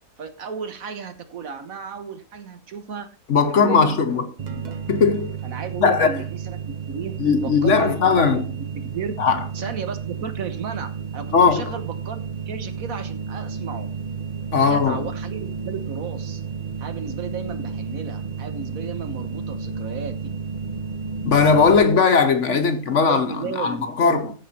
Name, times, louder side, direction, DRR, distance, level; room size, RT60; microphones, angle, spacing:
voice 1, 0.2-3.2 3.5-4.8 5.4-9.2 9.5-12.2 12.5-13.9 14.5-16.4 16.8-20.3 22.3-22.6 22.9-24.3, right 5 dB, 60° right, 1.4 m, -34 dB
voice 2, 3.3-4.3 4.9-5.4 5.8-6.1 7.2-8.4 9.2-9.4 11.3-11.8 14.5-15.0 21.2-24.2, left 5 dB, 55° left, 1.2 m, -18 dB
sound 1, 4.4-21.8, right 6 dB, 35° right, 0.8 m, -32 dB
14.5 x 5.4 x 4.2 m
omnidirectional pair, 1.7 m